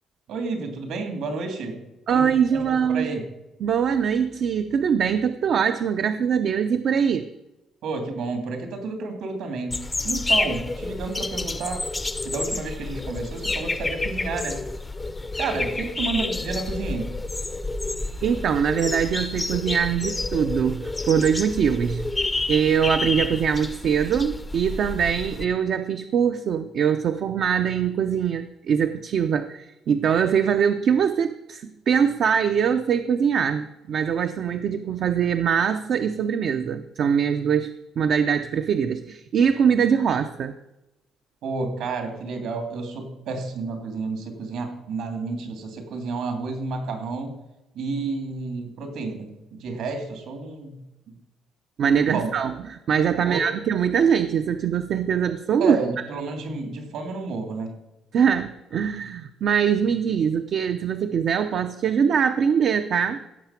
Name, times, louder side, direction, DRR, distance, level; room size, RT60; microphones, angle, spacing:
voice 1, 0.3-1.8 2.1-2.3 2.5-3.2 7.8-9.8 10.0-11.8 12.2-14.6 15.4-17.1 41.4-47.3 47.7-50.8 51.9-52.3 53.2-53.4 55.6-57.7, right 3 dB, 70° right, 5 dB, 2.8 m, -30 dB
voice 2, 2.1-3.2 3.6-7.3 18.2-22.1 22.5-40.5 51.8-55.8 58.1-63.2, right 7 dB, 50° right, 8 dB, 0.5 m, -22 dB
sound 1, 9.7-25.4, left 2 dB, 15° left, 0.5 m, -29 dB
16.0 x 6.8 x 5.8 m, 0.96 s
cardioid pair, 165°, 0 cm